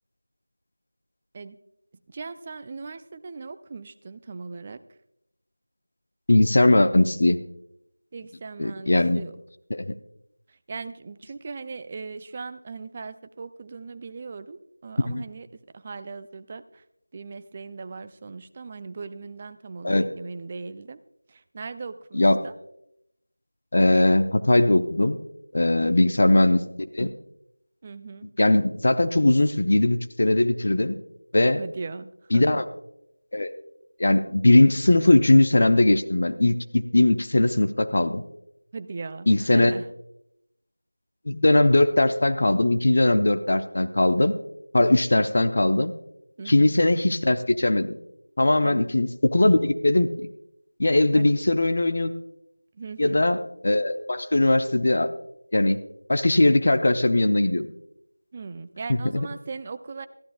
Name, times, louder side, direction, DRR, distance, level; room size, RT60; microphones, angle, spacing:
voice 1, 2.1-4.8 8.1-9.3 10.5-16.8 17.1-21.0 21.3-22.5 25.8-26.1 27.8-28.3 31.6-32.6 38.7-39.9 46.4-46.7 48.6-48.8 51.1-51.3 52.7-53.2 58.3-60.1, right 4 dB, 20° right, 12 dB, 0.5 m, -38 dB
voice 2, 6.3-7.4 8.6-9.2 9.7-9.9 15.0-15.2 19.8-20.1 22.1-22.4 23.7-25.2 25.5-26.6 26.9-27.1 28.4-31.0 31.3-31.6 32.3-32.6 33.3-33.5 34.0-38.2 39.3-39.7 41.3-44.3 44.7-45.9 46.5-48.0 48.4-50.1 50.8-52.1 53.0-55.1 55.5-55.8 56.1-57.7 58.9-59.3, left 2 dB, 45° left, 8 dB, 0.8 m, -20 dB
22.0 x 14.5 x 2.4 m, 0.80 s
figure-of-eight pair, 170°, 0 cm